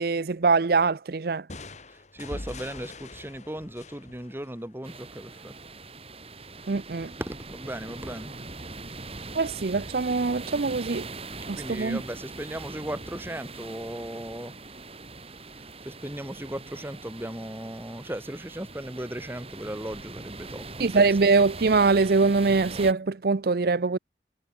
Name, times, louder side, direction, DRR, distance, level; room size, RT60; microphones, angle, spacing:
voice 1, 0.0-1.4 6.7-7.1 9.3-11.0 11.5-12.0 20.8-24.0, right 4 dB, 55° right, 0.6 m, -23 dB
sound 1, 1.5-5.2, left 2 dB, 40° left, 2.4 m, -43 dB
voice 2, 2.1-5.5 7.2-8.3 11.6-14.6 15.6-21.0, right 1 dB, 15° right, 1.7 m, -37 dB
sound 2, 4.8-22.9, right 3 dB, 35° right, 5.4 m, -41 dB
head